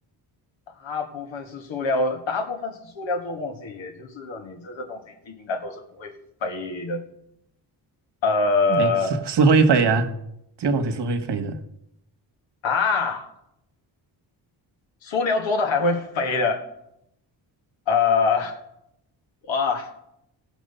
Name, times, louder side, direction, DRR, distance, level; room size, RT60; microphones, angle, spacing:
voice 1, 0.8-6.1 6.4-7.0 8.2-9.1 12.6-13.3 15.0-16.7 17.9-18.6 19.5-19.9, left 4 dB, 75° left, 4 dB, 1.9 m, -25 dB
voice 2, 8.7-10.1 10.6-11.6, right 4 dB, 60° right, 7 dB, 1.3 m, -21 dB
16.5 x 6.0 x 5.5 m, 0.81 s
cardioid pair, 65°, 46 cm